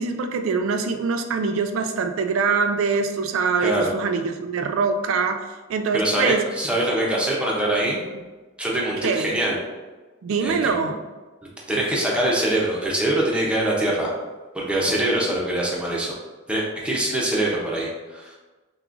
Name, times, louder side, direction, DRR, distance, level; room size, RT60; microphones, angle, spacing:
voice 1, 0.0-6.4 7.8-7.9 9.0-9.4 10.2-11.0, right 5 dB, 80° right, 6 dB, 0.4 m, -24 dB
voice 2, 5.9-8.0 8.6-9.6 10.4-10.7 11.7-14.1 14.5-16.1 16.5-18.3, right 1 dB, 5° right, -4 dB, 0.7 m, -23 dB
5.8 x 2.3 x 2.6 m, 1.3 s
head